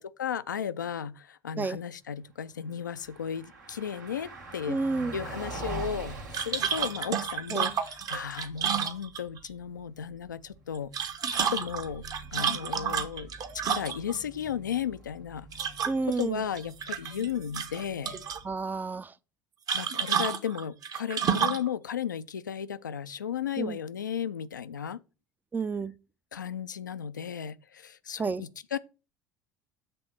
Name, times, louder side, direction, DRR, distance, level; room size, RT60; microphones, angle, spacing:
voice 1, 0.0-10.9 11.3-13.3 13.7-15.5 16.0-18.2 19.7-25.0 26.3-28.8, left 8 dB, 80° left, 0.4 m, -35 dB
Car passing by, 2.6-18.8, right 2 dB, 75° right, 1.5 m, -45 dB
voice 2, 4.7-5.1 7.5-7.7 15.9-16.4 18.4-19.1 23.6-23.8 25.5-25.9 28.2-28.4, right 4 dB, 20° right, 0.4 m, -30 dB
sound 1, 6.3-9.5 10.7-14.2 15.5-16.2 16.6-17.3 17.5-18.4 19.7-21.7, right 7 dB, 40° right, 0.9 m, -30 dB
7.6 x 3.4 x 6.1 m
figure-of-eight pair, 65°, 10 cm